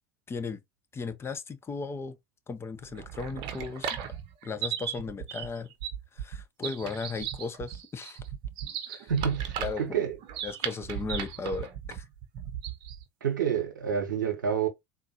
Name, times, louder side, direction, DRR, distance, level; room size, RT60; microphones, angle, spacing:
voice 1, 0.3-0.6 0.9-2.2 2.5-4.0 4.4-5.7 6.1-8.2 8.9-9.1 9.6-10.0 10.4-12.0, left 4 dB, 25° left, 0.8 m, -36 dB
sound 1, 2.8-13.1, right 9 dB, 55° right, 0.8 m, -36 dB
voice 2, 9.1-10.1 13.2-14.7, right 7 dB, 85° right, 0.9 m, -28 dB
3.8 x 2.5 x 2.7 m
hypercardioid pair, 75°, 10 cm